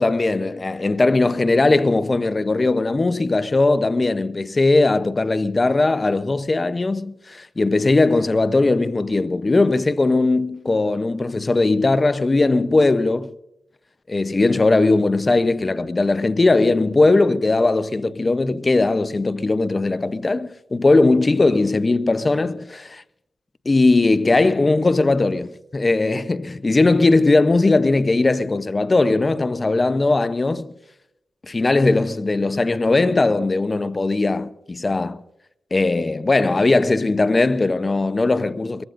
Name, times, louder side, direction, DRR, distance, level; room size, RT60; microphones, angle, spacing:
voice 1, 0.0-13.3 14.1-23.0 23.7-30.7 31.4-35.2 35.7-38.8, left 2 dB, 35° left, 0.7 m, -19 dB
23.5 x 22.5 x 2.6 m
cardioid pair, 50°, 0 cm